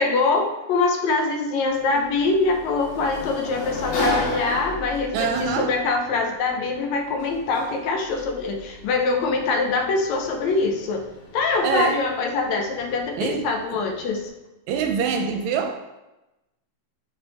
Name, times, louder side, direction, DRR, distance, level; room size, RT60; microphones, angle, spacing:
voice 1, 0.0-11.1 11.3-14.3, left 3 dB, 75° left, 1.9 m, -24 dB
Sliding door, 1.6-14.3, left 1 dB, 90° left, 3.4 m, -35 dB
voice 2, 5.1-5.8 11.6-12.1 13.2-13.5 14.7-15.9, right 6 dB, 80° right, 1.8 m, -25 dB
7.3 x 5.4 x 3.4 m
omnidirectional pair, 3.5 m